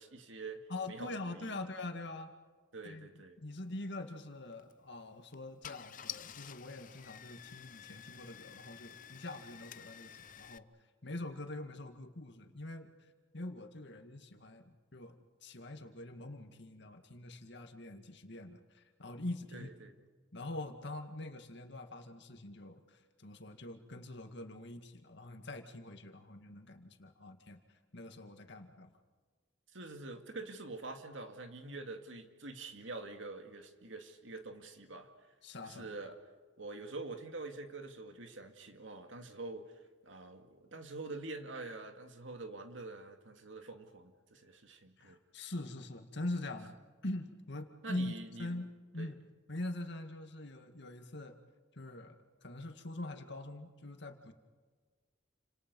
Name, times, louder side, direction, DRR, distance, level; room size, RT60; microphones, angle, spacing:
voice 1, 0.0-0.6 0.9-1.7 2.7-3.4 19.5-19.9 29.7-35.1 35.6-36.2 36.6-39.7 40.0-45.2 47.8-48.5 49.0-49.1, right 3 dB, 90° right, 6 dB, 2.3 m, -46 dB
voice 2, 0.7-2.3 2.8-10.7 11.0-12.9 13.3-15.2 15.4-19.7 20.3-27.6 27.9-28.9 35.4-35.9 45.0-48.1 48.4-49.2 49.5-51.4 51.8-52.2 52.4-54.3, left 2 dB, 65° left, 6 dB, 2.1 m, -44 dB
Car / Engine starting, 4.5-4.7 5.3-5.4 5.6-10.6, left 10 dB, 45° left, 0.7 m, -50 dB
29.5 x 26.5 x 5.5 m, 1.4 s
head